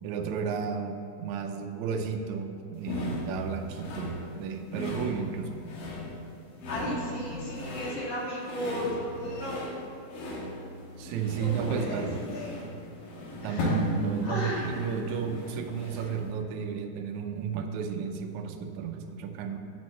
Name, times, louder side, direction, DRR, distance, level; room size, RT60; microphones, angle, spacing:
voice 1, 0.0-5.5 11.0-12.2 12.6-12.8 13.4-19.6, right 6 dB, 80° right, 4 dB, 1.7 m, -33 dB
sound 1, 2.8-16.3, left 1 dB, 85° left, 3.2 m, -37 dB
voice 2, 6.7-9.8 11.4-12.5 13.4-13.8 14.2-14.6, left 1 dB, 40° left, -6 dB, 2.4 m, -35 dB
7.3 x 6.3 x 7.5 m, 2.6 s
omnidirectional pair, 4.1 m